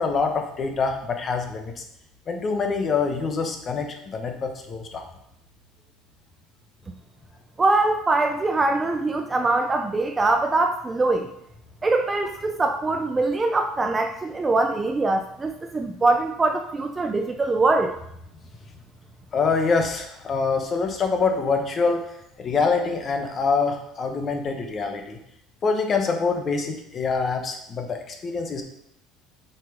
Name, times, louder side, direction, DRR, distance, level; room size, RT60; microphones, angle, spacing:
voice 1, 0.0-1.8 2.3-5.1 19.3-22.1 22.4-25.2 25.6-28.6, left 4 dB, 25° left, 4 dB, 1.0 m, -25 dB
voice 2, 7.6-11.3 11.8-17.9, right 2 dB, 15° right, 5 dB, 0.4 m, -23 dB
7.6 x 4.9 x 5.0 m, 0.78 s
cardioid pair, 170°, 0 cm